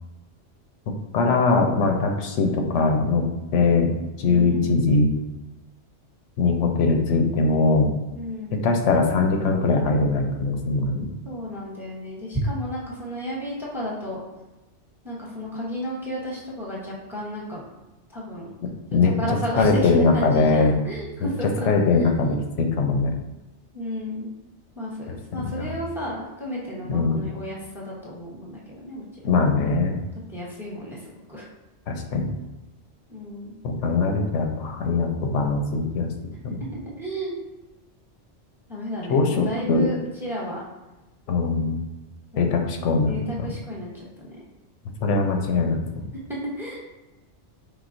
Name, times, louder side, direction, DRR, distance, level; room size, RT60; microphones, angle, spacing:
voice 1, 1.1-3.3 3.5-3.9 4.2-5.1 6.4-7.9 8.5-11.1 18.9-19.1 19.5-20.7 21.7-23.1 25.6-25.7 26.9-27.2 29.2-30.0 31.9-32.3 33.6-36.1 39.1-39.9 41.3-41.8 42.4-43.1 43.4-43.5 45.0-45.8, left 3 dB, 80° left, 3 dB, 1.0 m, -21 dB
voice 2, 4.2-4.7 8.1-8.6 11.2-14.2 15.0-17.6 18.1-18.5 19.0-21.7 22.0-22.4 23.7-24.3 24.7-29.4 30.3-31.5 33.1-33.5 37.0-37.3 38.7-40.6 42.3-42.5 43.1-44.4 46.6-46.8, equal, ahead, -4 dB, 0.8 m, -33 dB
4.9 x 3.4 x 2.6 m, 1.0 s
omnidirectional pair, 1.2 m